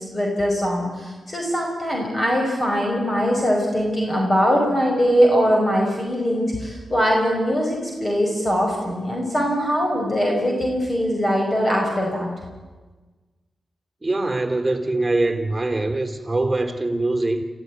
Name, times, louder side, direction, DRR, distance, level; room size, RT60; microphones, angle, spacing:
voice 1, 0.0-12.3, equal, 30° left, 0 dB, 5.3 m, -21 dB
voice 2, 14.0-17.4, right 2 dB, 20° right, 6 dB, 3.0 m, -23 dB
27.0 x 14.5 x 9.6 m, 1.3 s
cardioid pair, 75°, 0 cm